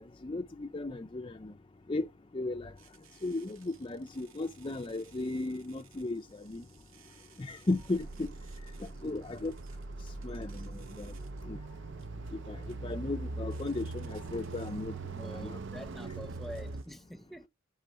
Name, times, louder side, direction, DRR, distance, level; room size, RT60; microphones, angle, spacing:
voice 1, 0.0-1.5 1.9-2.1 2.3-2.7 3.2-6.6 7.4-8.3 9.0-9.5 10.2-11.1 11.5-11.6 12.5-15.0 15.3-15.6, left 2 dB, 25° left, 0.5 m, -35 dB
sound 1, 2.8-16.9, right 9 dB, 75° right, 2.3 m, -62 dB
sound 2, 7.8-16.8, right 3 dB, 55° right, 0.6 m, -41 dB
voice 2, 9.0-9.5 15.1-17.5, equal, ahead, 0.8 m, -46 dB
10.5 x 3.8 x 7.4 m
head